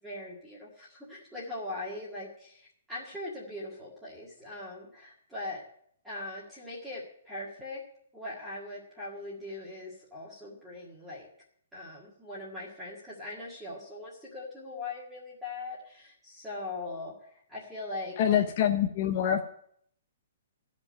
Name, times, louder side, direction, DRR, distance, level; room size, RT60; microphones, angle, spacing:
voice 1, 0.0-5.6 6.0-7.8 8.1-11.3 11.7-18.5, left 2 dB, 5° right, -7 dB, 1.8 m, -41 dB
voice 2, 18.2-19.4, left 10 dB, 30° left, 4 dB, 0.6 m, -25 dB
13.0 x 5.2 x 9.1 m, 0.67 s
hypercardioid pair, 175°, 0 cm